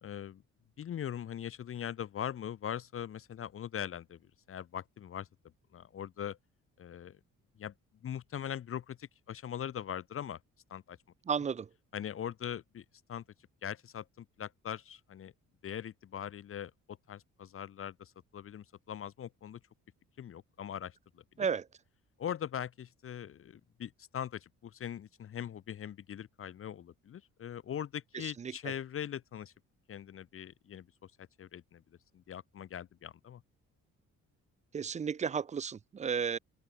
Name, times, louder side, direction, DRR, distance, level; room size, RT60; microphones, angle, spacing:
voice 1, 0.0-0.4 0.8-4.2 4.5-5.3 5.7-6.4 6.8-7.2 7.6-7.7 8.0-10.4 10.7-11.0 11.9-13.2 13.6-15.3 15.6-19.6 20.2-21.0 21.4-21.5 22.2-29.5 29.9-30.9 31.4-31.8 32.1-33.4, left 9 dB, 45° left, 0.8 m, -41 dB
voice 2, 11.3-11.7 21.4-21.7 28.1-28.7 34.7-36.4, right 6 dB, 25° right, 0.4 m, -33 dB
open air
cardioid pair, 90°, 30 cm